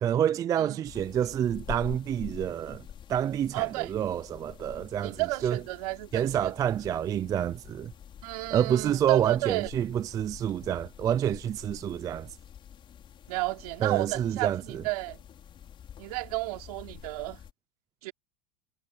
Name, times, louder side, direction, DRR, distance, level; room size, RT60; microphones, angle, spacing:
voice 1, 0.0-2.8 3.1-5.6 6.1-7.9 8.5-12.4 13.8-14.8, right 10 dB, 15° right, 0.4 m, -28 dB
sound 1, 0.9-17.5, left 9 dB, 25° left, 6.0 m, -47 dB
voice 2, 3.5-3.9 5.0-6.5 8.2-9.7 13.3-15.2 16.0-17.4 18.0-18.1, right 21 dB, 65° right, 3.6 m, -32 dB
supercardioid pair, 155°, 21 cm